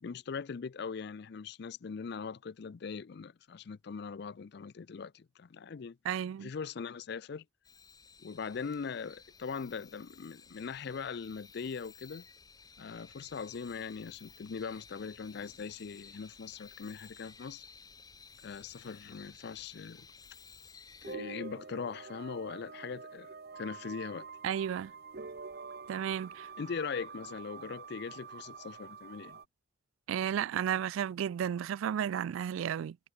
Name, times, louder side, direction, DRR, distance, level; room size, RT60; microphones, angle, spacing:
voice 1, 0.0-6.0 6.4-7.4 8.2-12.2 12.8-17.6 18.4-20.1 21.0-24.3 26.6-29.4, left 5 dB, 55° left, 0.4 m, -41 dB
voice 2, 6.0-6.5 24.4-24.9 25.9-26.5 30.1-33.0, right 9 dB, 75° right, 0.3 m, -33 dB
sound 1, 7.6-21.2, left 5 dB, 20° left, 0.7 m, -55 dB
sound 2, 21.0-29.4, right 4 dB, 50° right, 0.7 m, -46 dB
head